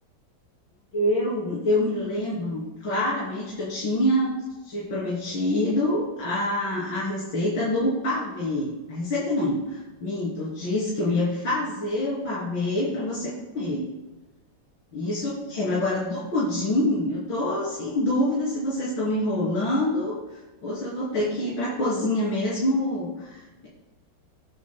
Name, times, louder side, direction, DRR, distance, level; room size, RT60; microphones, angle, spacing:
voice 1, 0.9-4.4 4.7-13.9 14.9-20.2 20.6-23.7, left 1 dB, 70° left, -8 dB, 3.9 m, -26 dB
23.0 x 8.5 x 2.2 m, 1.1 s
omnidirectional pair, 2.2 m